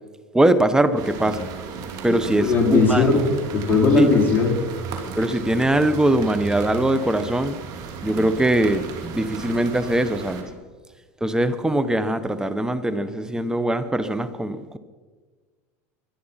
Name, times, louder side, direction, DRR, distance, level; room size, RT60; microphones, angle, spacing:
voice 1, 0.3-1.5 2.0-3.3 4.0-4.1 5.2-7.6 8.0-10.5 11.2-14.8, right 1 dB, 10° right, 12 dB, 1.0 m, -21 dB
sound 1, 1.0-10.4, right 6 dB, 55° right, 3.3 m, -35 dB
voice 2, 2.4-3.2 3.5-4.5, left 4 dB, 25° left, 0 dB, 4.8 m, -18 dB
23.5 x 10.0 x 5.7 m, 1.4 s
supercardioid pair, 110°, 8 cm